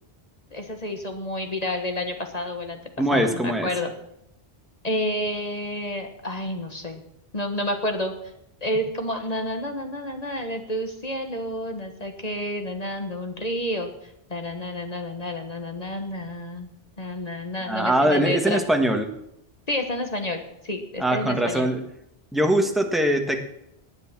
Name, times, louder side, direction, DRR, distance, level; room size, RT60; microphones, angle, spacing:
voice 1, 0.5-2.8 3.1-3.9 4.8-7.0 7.3-8.1 8.6-13.9 14.3-16.7 17.0-18.6 19.7-21.7, left 1 dB, 40° left, 5 dB, 1.5 m, -30 dB
voice 2, 3.0-3.7 17.7-19.1 21.0-21.8 22.3-23.4, right 1 dB, ahead, 4 dB, 1.4 m, -22 dB
17.5 x 9.6 x 6.0 m, 0.81 s
omnidirectional pair, 1.1 m